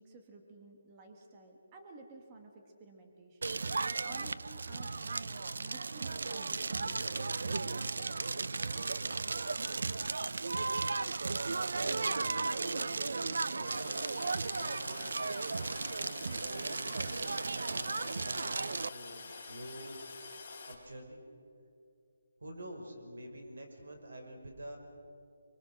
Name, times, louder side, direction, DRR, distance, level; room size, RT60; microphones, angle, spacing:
voice 1, 0.0-3.6 4.0-8.1, right 3 dB, 15° right, 2 dB, 1.3 m, -53 dB
Crackle, 3.4-18.9, right 4 dB, 65° right, 0.5 m, -35 dB
voice 2, 10.6-11.2 11.4-14.1 14.5-15.5 16.0-20.0 20.5-21.2 22.4-24.8, right 1 dB, 85° right, 3 dB, 6.0 m, -48 dB
Toilet flush, 13.6-20.7, left 4 dB, 20° left, 3.9 m, -47 dB
25.5 x 23.5 x 6.4 m, 2.6 s
hypercardioid pair, 180°, 0 cm